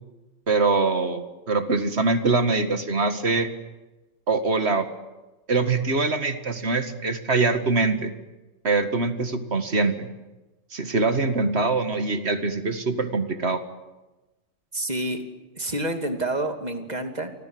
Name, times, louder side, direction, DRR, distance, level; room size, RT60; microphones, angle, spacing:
voice 1, 0.5-3.5 4.3-4.9 5.5-8.1 8.6-10.1 10.7-13.6, right 3 dB, 50° right, 8 dB, 2.2 m, -23 dB
voice 2, 14.7-15.3 15.6-17.3, right 1 dB, 30° right, 6 dB, 2.7 m, -28 dB
29.5 x 25.5 x 7.9 m, 1.1 s
omnidirectional pair, 1.4 m